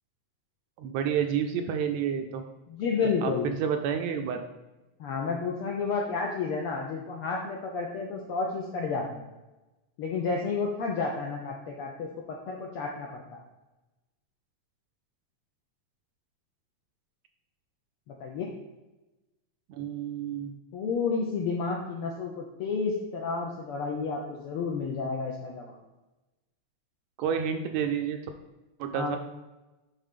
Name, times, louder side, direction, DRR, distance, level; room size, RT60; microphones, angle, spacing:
voice 1, 0.8-2.4 3.2-4.4 19.7-20.5 27.2-28.2 28.8-29.2, right 8 dB, 80° right, 5 dB, 1.7 m, -29 dB
voice 2, 2.7-3.6 5.0-9.3 10.0-12.1 12.5-13.4 18.1-18.5 20.7-25.8 28.9-29.2, left 4 dB, 75° left, -1 dB, 1.2 m, -31 dB
9.1 x 3.8 x 3.6 m, 1.1 s
omnidirectional pair, 3.3 m